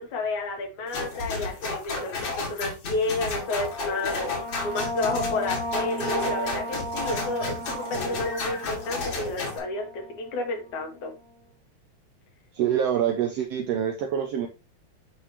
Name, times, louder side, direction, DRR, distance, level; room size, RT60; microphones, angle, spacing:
voice 1, 0.0-11.1, left 3 dB, 75° left, 1 dB, 3.2 m, -31 dB
sound 1, 0.9-9.6, left 3 dB, 55° left, 2.9 m, -32 dB
sound 2, 3.3-10.5, equal, 20° right, 0.5 m, -34 dB
voice 2, 12.5-14.5, right 9 dB, 70° right, 4 dB, 1.6 m, -25 dB
11.0 x 3.8 x 2.9 m, 0.28 s
omnidirectional pair, 3.5 m